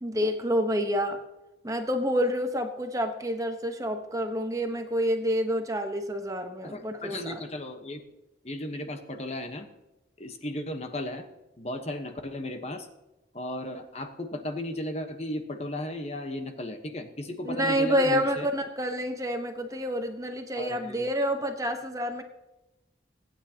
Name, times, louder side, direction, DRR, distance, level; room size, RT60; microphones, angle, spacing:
voice 1, 0.0-1.2 1.6-7.4 17.4-22.2, equal, 20° right, 5 dB, 1.0 m, -28 dB
voice 2, 6.6-8.0 8.4-9.7 10.2-11.2 11.6-12.9 13.3-18.5 20.6-21.1, left 1 dB, 35° left, 6 dB, 1.1 m, -35 dB
24.0 x 9.1 x 2.9 m, 1.0 s
head